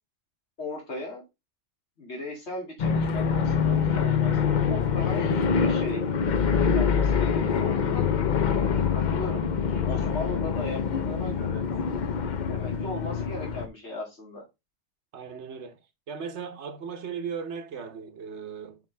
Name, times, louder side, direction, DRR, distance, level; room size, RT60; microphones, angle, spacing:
voice 1, 0.6-1.2 2.0-6.0 6.7-8.1 8.6-11.8 12.5-14.4, left 2 dB, 75° left, 2.7 m, -37 dB
sound 1, 2.8-13.7, left 6 dB, 50° left, 0.7 m, -25 dB
voice 2, 15.1-15.8 16.1-18.8, right 6 dB, 80° right, 1.3 m, -37 dB
7.1 x 4.5 x 3.3 m
omnidirectional pair, 1.1 m